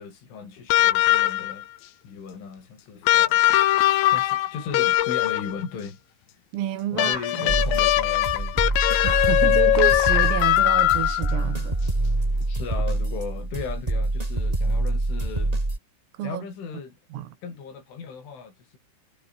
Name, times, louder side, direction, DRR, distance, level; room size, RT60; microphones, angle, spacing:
voice 1, 0.0-1.7 2.0-3.5 4.1-6.0 6.9-8.6 12.5-15.6 16.2-17.0 17.4-18.8, left 5 dB, 70° left, 8.7 m, -37 dB
sound 1, 0.7-1.6 3.1-5.6 7.0-11.4 12.8-12.9, left 15 dB, 85° left, 4.1 m, -21 dB
voice 2, 6.5-7.6 9.0-11.8 16.1-16.5 17.1-17.4, right 12 dB, 85° right, 4.8 m, -29 dB
sound 2, 7.5-15.8, right 2 dB, 15° right, 1.4 m, -26 dB
omnidirectional pair, 5.8 m